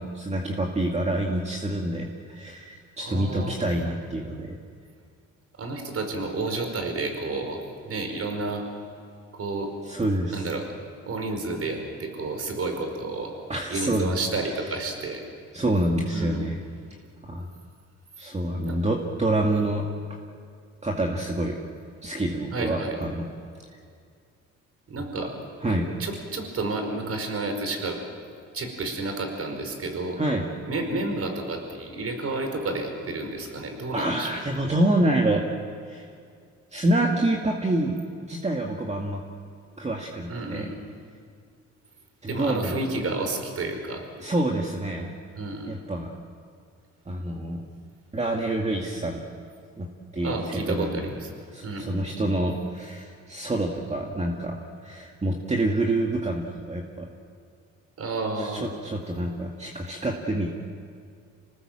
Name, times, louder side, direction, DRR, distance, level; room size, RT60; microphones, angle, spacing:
voice 1, 0.0-4.6 9.8-10.5 13.5-14.1 14.5-14.7 15.5-16.6 17.2-17.5 18.2-19.9 20.8-21.6 22.0-23.3 25.6-25.9 30.2-30.4 33.9-35.4 35.9-36.1 36.7-39.2 39.8-40.7 42.2-42.7 44.2-45.1 45.7-46.1 47.1-47.7 48.1-49.2 49.8-49.9 50.1-51.1 51.5-57.1 58.4-60.5, right 1 dB, 20° right, 1 dB, 2.1 m, -27 dB
voice 2, 3.0-3.6 5.6-8.6 9.3-9.7 10.3-10.7 11.0-13.3 13.7-15.2 16.1-16.4 18.6-18.8 22.5-23.0 24.9-25.3 25.6-25.7 26.0-28.0 28.5-30.2 30.7-34.4 40.3-40.8 42.3-44.0 45.4-45.8 47.6-47.7 50.2-51.3 51.6-51.9 58.0-58.6, right 2 dB, 50° right, 4 dB, 4.9 m, -31 dB
27.0 x 19.0 x 7.6 m, 2.3 s
cardioid pair, 90°, 30 cm